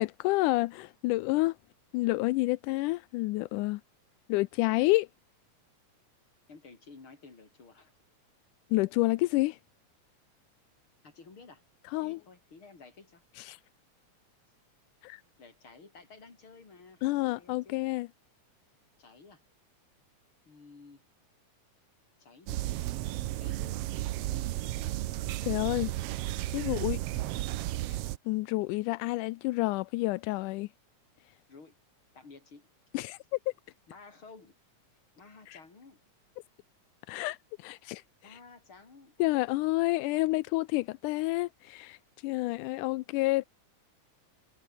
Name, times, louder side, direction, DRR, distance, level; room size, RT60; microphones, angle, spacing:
voice 1, 0.0-1.6 1.9-3.8 4.3-5.1 8.7-9.6 11.9-12.2 13.4-13.6 15.0-15.2 17.0-18.1 25.4-25.9 26.5-27.0 27.9-28.0 28.3-30.7 32.9-33.2 35.5-35.6 37.1-38.4 39.2-42.0 42.2-43.5, left 20 dB, 85° left, 2.1 m, -29 dB
voice 2, 6.5-7.9 11.0-11.6 12.0-13.2 15.2-17.8 19.0-19.4 20.5-21.1 22.2-22.8 23.4-23.8 24.2-25.0 31.5-31.8 32.1-32.7 33.9-34.6 35.2-36.0 38.2-39.2, left 4 dB, 40° left, 5.4 m, -53 dB
sound 1, 22.5-28.2, right 16 dB, 85° right, 1.4 m, -33 dB
omnidirectional pair, 3.5 m